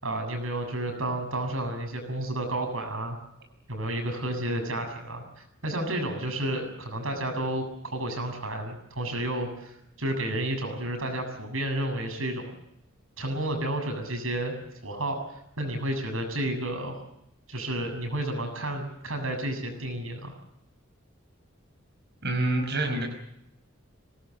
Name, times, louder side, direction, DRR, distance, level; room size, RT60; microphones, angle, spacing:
voice 1, 0.0-3.2 3.7-5.2 5.6-12.5 13.2-14.5 14.8-15.2 15.6-17.0 17.5-20.3, right 1 dB, 90° right, 5 dB, 7.5 m, -31 dB
voice 2, 22.2-23.0, right 2 dB, 55° right, 2 dB, 5.4 m, -26 dB
26.0 x 19.0 x 7.8 m, 0.79 s
head